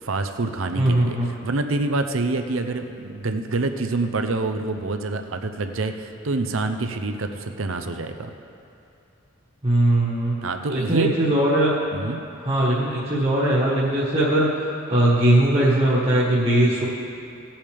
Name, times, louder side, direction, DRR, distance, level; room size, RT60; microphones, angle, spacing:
voice 1, 0.0-8.3 10.4-11.2 11.9-12.2, right 3 dB, 70° right, 7 dB, 0.7 m, -26 dB
voice 2, 0.8-1.3 9.6-10.3 10.7-11.8 12.4-16.8, right 1 dB, 30° right, -8 dB, 1.4 m, -20 dB
17.5 x 8.7 x 3.5 m, 2.6 s
head